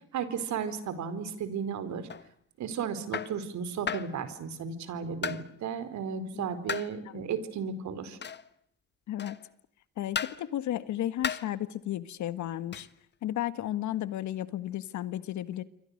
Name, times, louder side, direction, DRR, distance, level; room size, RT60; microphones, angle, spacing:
voice 1, 0.1-2.1 2.6-8.2, right 6 dB, 70° right, 12 dB, 4.5 m, -34 dB
sound 1, 2.1-2.3 3.1-3.4 3.9-4.2 5.2-5.5 6.7-6.9 8.2-8.5 9.2-9.5 10.1-10.4 11.2-11.5 12.7-12.9, left 6 dB, 35° left, 1.4 m, -34 dB
voice 2, 10.0-12.9 13.2-15.6, left 12 dB, 70° left, 14 dB, 1.7 m, -33 dB
28.5 x 25.0 x 6.6 m, 0.69 s
cardioid pair, 80°, 30 cm